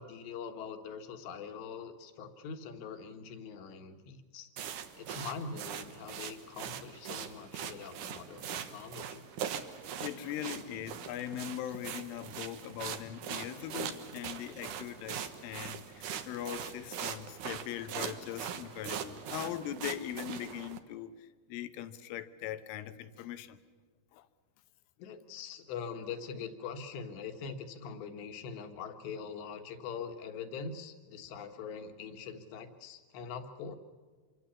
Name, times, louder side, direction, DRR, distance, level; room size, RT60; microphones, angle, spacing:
voice 1, 0.0-4.5 5.0-9.3 25.0-33.8, left 6 dB, 70° left, 3.6 m, -43 dB
sound 1, 4.6-20.8, right 8 dB, 75° right, 1.9 m, -41 dB
voice 2, 10.0-21.1 21.5-23.6 24.1-24.3, left 11 dB, 85° left, 3.6 m, -40 dB
26.5 x 24.5 x 7.1 m
omnidirectional pair, 5.6 m